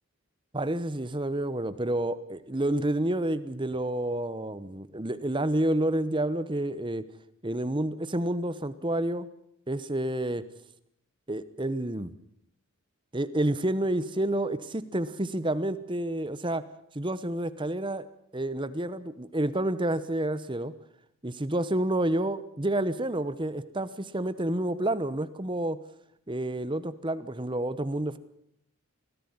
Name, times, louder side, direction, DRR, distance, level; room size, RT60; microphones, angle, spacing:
voice 1, 0.5-7.0 7.4-9.3 9.7-10.4 11.3-12.1 13.1-16.6 16.9-18.1 18.3-20.7 21.2-25.8 26.3-28.2, right 1 dB, 20° right, 14 dB, 0.9 m, -29 dB
21.0 x 14.5 x 9.5 m, 0.73 s
head